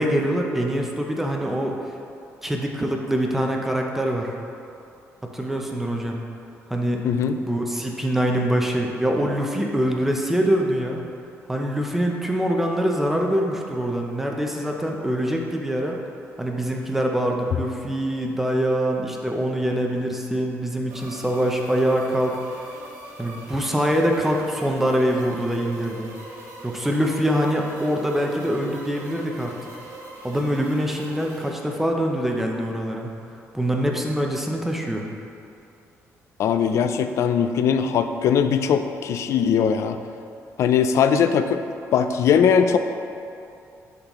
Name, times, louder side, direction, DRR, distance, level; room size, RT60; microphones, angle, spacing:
voice 1, 0.0-1.8 2.4-4.3 5.2-6.2 6.7-7.0 7.4-11.0 11.5-16.0 16.4-22.4 23.2-26.1 26.6-29.5 30.2-33.1 33.5-35.1, equal, 5° right, 0 dB, 0.5 m, -24 dB
voice 2, 7.0-7.4 36.4-40.0 40.6-41.6 41.9-42.8, left 7 dB, 60° left, 9 dB, 0.3 m, -20 dB
sound 1, 20.9-31.5, right 1 dB, 60° right, 1.3 m, -41 dB
10.0 x 3.9 x 3.0 m, 2.7 s
cardioid pair, 165°, 6 cm